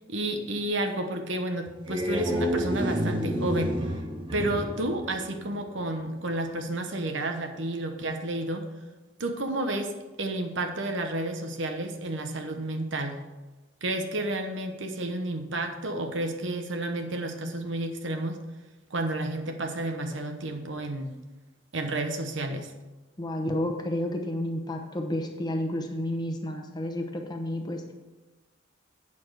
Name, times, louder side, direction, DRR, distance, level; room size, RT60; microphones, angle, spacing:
voice 1, 0.1-3.8 4.3-8.7 9.2-13.2 13.8-18.4 18.9-21.1 21.7-22.7, right 1 dB, 70° right, 5 dB, 1.0 m, -31 dB
sound 1, 1.7-5.9, equal, 25° right, 1.0 m, -30 dB
voice 2, 23.2-27.9, left 1 dB, 20° left, 3 dB, 1.0 m, -31 dB
8.5 x 6.9 x 4.9 m, 1.1 s
head